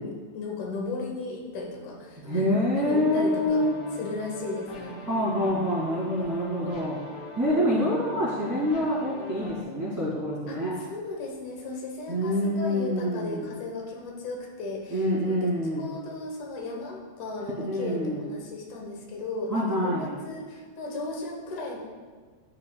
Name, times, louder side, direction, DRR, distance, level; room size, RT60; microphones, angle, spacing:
voice 1, 0.0-2.5 2.7-3.6 3.9-5.0 10.5-15.5 15.8-21.8, left 2 dB, 80° left, 0 dB, 2.4 m, -36 dB
voice 2, 2.2-3.7 5.1-7.0 7.3-10.7 12.1-13.4 14.9-15.9 17.6-18.2 19.5-20.1, equal, 10° right, -8 dB, 1.5 m, -26 dB
sound 1, 2.7-9.6, left 2 dB, 65° left, 1.4 m, -42 dB
11.0 x 5.5 x 2.3 m, 1.5 s
omnidirectional pair, 3.5 m